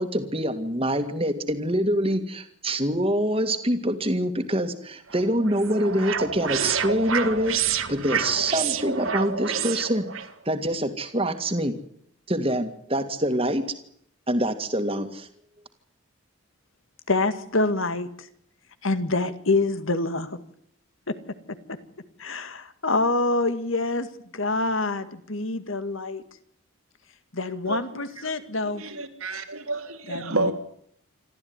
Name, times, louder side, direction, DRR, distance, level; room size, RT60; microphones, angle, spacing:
voice 1, 0.0-10.1 10.5-11.7 12.3-13.6 14.3-15.3, right 1 dB, 25° right, 2.1 m, -25 dB
sound 1, 5.1-10.3, right 7 dB, 70° right, 1.6 m, -28 dB
voice 2, 17.1-18.1 18.8-20.4 21.1-21.2 22.2-24.1 24.3-26.2 27.3-28.8 30.1-30.5, left 2 dB, 70° left, 2.0 m, -26 dB
voice 3, 27.7-28.0 28.6-30.5, right 2 dB, 90° right, 3.1 m, -30 dB
27.0 x 13.5 x 9.6 m
head